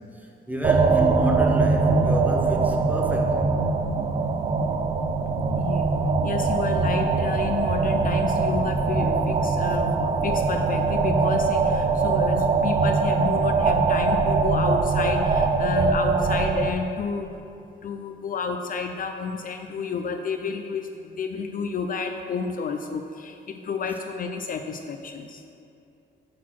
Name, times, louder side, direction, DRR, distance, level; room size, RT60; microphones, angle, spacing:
voice 1, 0.2-3.5, equal, 10° right, 1 dB, 0.8 m, -29 dB
sound 1, 0.6-16.7, right 4 dB, 30° right, 0.4 m, -22 dB
voice 2, 5.6-6.0 6.2-17.3 17.8-25.4, left 5 dB, 45° left, 5 dB, 0.4 m, -30 dB
6.2 x 4.2 x 5.8 m, 2.6 s
cardioid pair, 90°, 20 cm